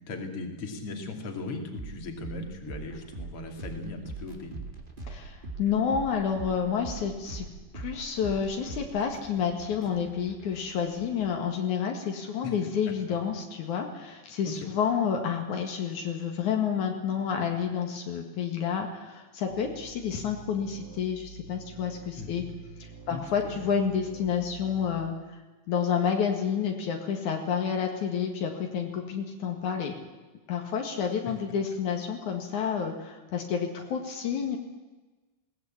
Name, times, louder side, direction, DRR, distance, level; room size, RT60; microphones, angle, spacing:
voice 1, 0.1-4.6 12.4-12.5 13.1-13.2 14.6-14.7 22.2-22.5 23.1-23.6, left 2 dB, 50° left, 3 dB, 3.5 m, -38 dB
sound 1, 1.7-11.4, right 3 dB, 15° right, 2.5 m, -42 dB
voice 2, 5.0-7.5 7.7-22.4 23.1-25.1 25.7-29.9 30.5-34.6, left 7 dB, 75° left, 3 dB, 3.3 m, -29 dB
Deep Wobble, 19.5-25.1, right 5 dB, 60° right, 2.1 m, -48 dB
21.0 x 19.0 x 8.7 m, 1.2 s
omnidirectional pair, 3.4 m